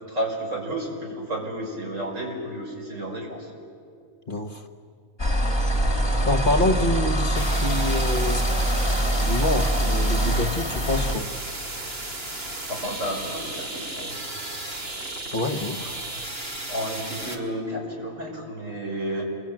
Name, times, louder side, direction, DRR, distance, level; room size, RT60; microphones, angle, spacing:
voice 1, 0.1-3.5 6.6-6.8 10.2-10.4 12.7-14.2 16.6-19.2, right 1 dB, 65° right, 0 dB, 6.2 m, -32 dB
voice 2, 4.3-4.6 6.2-8.4 9.2-11.3 15.3-16.0, left 2 dB, 40° left, 8 dB, 1.4 m, -26 dB
sound 1, 5.2-11.2, right 1 dB, 20° left, 2.5 m, -23 dB
sound 2, 7.4-17.4, right 2 dB, 45° right, 2.7 m, -34 dB
28.0 x 23.0 x 9.0 m, 2.3 s
omnidirectional pair, 1.4 m